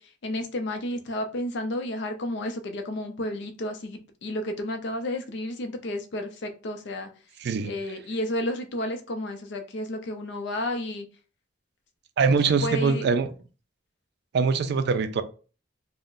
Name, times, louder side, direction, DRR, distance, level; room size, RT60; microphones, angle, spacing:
voice 1, 0.0-7.1 7.6-11.1 12.6-13.1, left 1 dB, 65° left, 0.5 m, -31 dB
voice 2, 7.4-7.7 12.2-13.3 14.3-15.2, right 5 dB, 60° right, 0.3 m, -23 dB
2.4 x 2.1 x 3.6 m
head